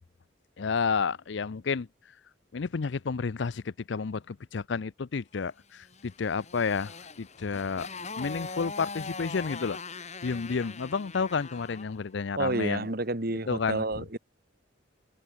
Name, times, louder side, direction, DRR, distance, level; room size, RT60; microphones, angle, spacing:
voice 1, 0.6-1.9 2.5-7.9 8.2-9.8 10.2-12.9 13.5-14.1, left 5 dB, 65° left, 0.5 m, -31 dB
Motorcycle, 5.9-12.0, left 4 dB, 35° left, 6.3 m, -41 dB
voice 2, 12.4-14.2, right 2 dB, 50° right, 1.8 m, -30 dB
head